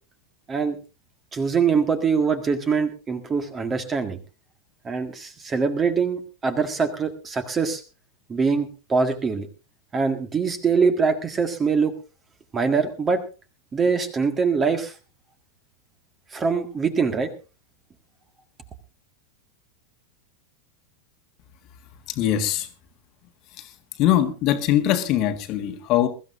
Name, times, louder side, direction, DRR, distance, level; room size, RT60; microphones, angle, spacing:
voice 1, 1.3-4.2 4.8-7.8 8.3-9.5 9.9-11.9 12.5-13.2 13.7-15.0 16.3-17.3, right 5 dB, 20° right, 8 dB, 1.8 m, -23 dB
voice 2, 22.1-22.7 24.0-26.1, left 11 dB, 40° left, 8 dB, 1.6 m, -21 dB
22.5 x 14.0 x 2.6 m, 0.32 s
figure-of-eight pair, 90°, 0 cm